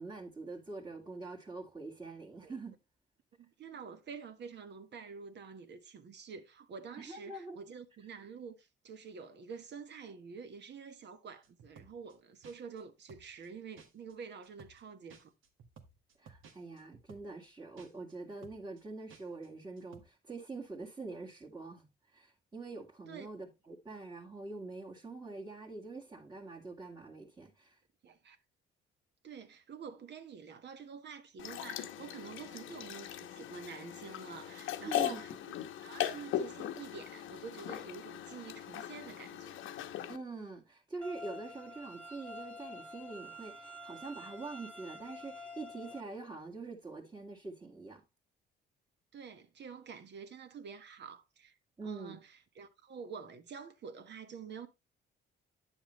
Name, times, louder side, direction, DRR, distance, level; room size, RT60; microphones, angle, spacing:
voice 1, 0.0-2.8 7.1-7.6 16.2-27.8 34.9-35.2 40.1-48.0 51.8-52.2, right 3 dB, 20° right, 2.0 m, -45 dB
voice 2, 3.4-15.3 23.1-23.3 28.0-28.4 29.2-35.6 35.8-39.6 49.1-51.5 51.8-54.7, right 6 dB, 60° right, 1.4 m, -48 dB
sound 1, 11.4-12.1 12.4-12.8 13.1-13.5 13.8-14.1 14.4-14.8 15.1-17.5 17.8-18.1 18.4-18.8 19.1-19.5 19.8-20.0, right 6 dB, 80° right, 1.7 m, -57 dB
sound 2, 31.4-40.2, left 11 dB, 90° left, 1.0 m, -39 dB
sound 3, 41.0-46.0, left 1 dB, 5° left, 1.7 m, -48 dB
10.0 x 7.2 x 3.2 m
cardioid pair, 90°, 20 cm